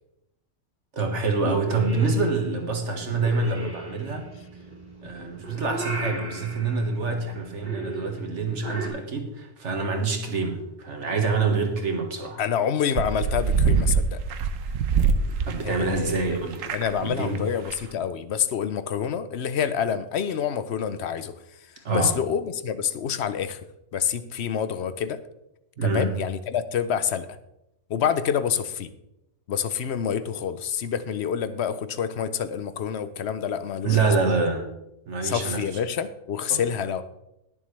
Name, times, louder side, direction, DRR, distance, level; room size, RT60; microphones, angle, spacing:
voice 1, 0.9-4.3 5.0-12.4 15.3-16.7 17.0-17.4 21.9-22.2 25.8-26.1 33.8-34.7 35.1-35.6 36.5-36.6, right 4 dB, 65° right, 3 dB, 1.9 m, -26 dB
Purr / Meow, 1.4-8.9, right 2 dB, 35° right, 2.9 m, -37 dB
voice 2, 12.4-14.2 15.6-16.3 16.7-21.4 21.9-23.6 23.9-25.2 25.8-27.3 27.9-28.9 29.5-34.1 35.2-37.0, left 8 dB, 60° left, 13 dB, 0.9 m, -27 dB
sound 1, 12.9-16.2 16.5-17.1 17.3-17.4 17.6-17.8, right 5 dB, 90° right, 1.2 m, -24 dB
20.0 x 7.2 x 3.3 m, 0.86 s
omnidirectional pair, 1.3 m